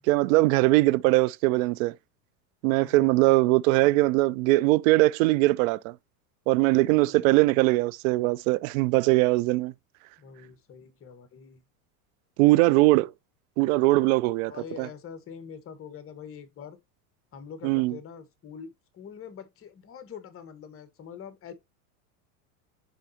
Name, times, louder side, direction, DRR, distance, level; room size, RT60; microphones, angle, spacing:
voice 1, 0.1-1.9 2.6-5.9 6.5-9.7 12.4-13.1 13.6-14.5 14.8-14.9 17.6-18.0, right 20 dB, 65° right, 0.5 m, -21 dB
voice 2, 2.8-3.2 6.9-7.4 10.2-11.6 14.5-16.8 17.3-21.5, left 7 dB, 30° left, 1.5 m, -44 dB
10.0 x 3.9 x 2.9 m
supercardioid pair, 120°, 45 cm